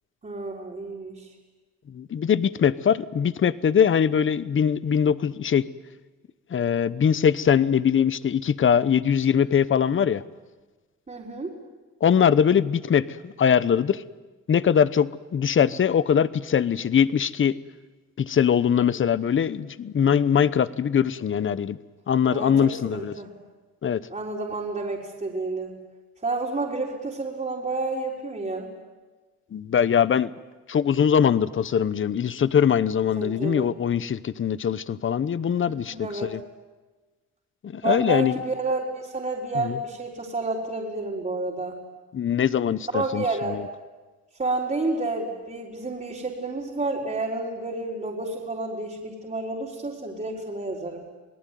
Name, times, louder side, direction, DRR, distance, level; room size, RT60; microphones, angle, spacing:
voice 1, 0.2-1.3 11.1-11.5 22.3-23.3 24.1-25.7 26.2-28.7 33.2-33.7 35.8-36.4 37.8-41.8 42.9-43.6 44.4-51.0, right 3 dB, 25° right, -4 dB, 4.2 m, -30 dB
voice 2, 1.9-5.7 6.5-10.2 12.0-14.0 14.5-17.6 18.2-21.8 22.1-23.1 23.8-24.0 29.5-30.3 30.7-36.4 37.6-38.4 39.5-39.8 42.1-43.7, left 8 dB, 40° left, 16 dB, 0.9 m, -22 dB
28.0 x 19.0 x 9.3 m, 1.3 s
cardioid pair, 90°, 30 cm